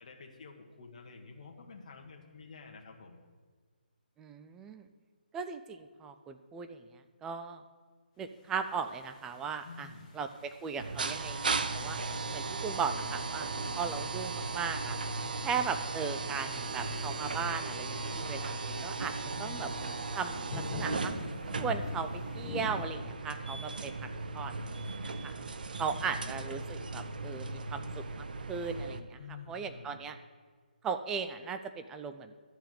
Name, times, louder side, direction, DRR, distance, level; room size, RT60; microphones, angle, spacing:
voice 1, 0.0-3.2 9.6-10.1 12.0-12.2 19.3-19.8 25.8-26.2 29.2-30.0, left 4 dB, 45° left, 1 dB, 1.5 m, -49 dB
voice 2, 4.2-4.8 5.3-6.8 7.2-7.6 8.2-9.9 10.1-12.0 12.3-13.5 13.8-15.0 15.4-19.1 19.4-19.7 20.1-21.1 21.6-24.1 24.3-25.3 25.8-29.2 29.5-30.2 30.8-32.4, right 6 dB, 10° right, 8 dB, 0.3 m, -37 dB
sound 1, 8.5-22.8, left 2 dB, 20° left, 1.3 m, -47 dB
sound 2, 10.8-29.0, right 3 dB, 60° right, 0.7 m, -37 dB
12.0 x 4.7 x 7.6 m, 1.5 s
hypercardioid pair, 160°, 5 cm